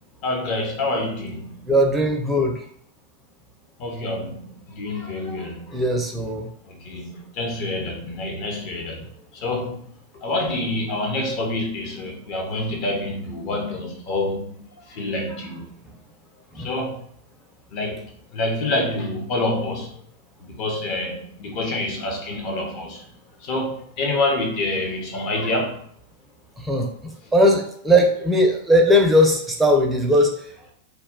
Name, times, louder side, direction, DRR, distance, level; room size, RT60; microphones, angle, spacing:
voice 1, 0.2-1.7 3.8-5.8 6.7-9.9 10.2-15.7 16.5-17.0 17.7-20.0 20.4-23.0 23.4-25.8 27.2-27.3, left 2 dB, 45° left, 1 dB, 0.8 m, -27 dB
voice 2, 1.7-2.5 5.7-6.5 16.5-16.7 26.6-26.9 27.3-30.3, equal, 10° right, 1 dB, 0.5 m, -18 dB
2.2 x 2.2 x 3.6 m, 0.65 s
figure-of-eight pair, 95°, 0 cm